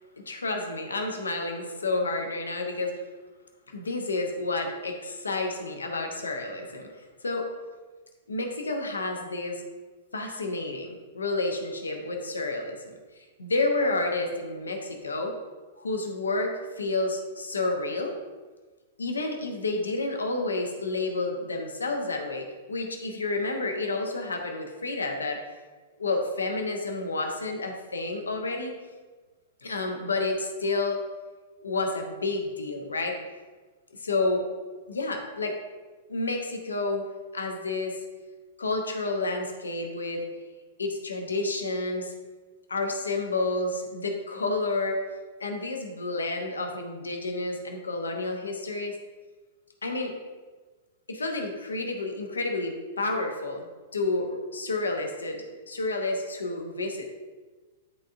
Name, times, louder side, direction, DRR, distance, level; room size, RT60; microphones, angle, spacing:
voice 1, 0.3-2.9 3.7-7.5 8.3-9.6 10.1-12.9 13.4-15.3 15.8-18.1 19.0-25.4 26.0-28.7 29.6-31.0 31.6-33.2 33.9-34.4 34.9-35.6 36.1-37.1 37.3-38.0 38.6-40.3 40.8-42.1 42.7-45.0 45.4-49.0 49.8-50.2 51.1-53.6 53.9-57.0, left 2 dB, 75° left, 3 dB, 0.9 m, -30 dB
11.0 x 3.7 x 2.5 m, 1.3 s
figure-of-eight pair, 100°, 0 cm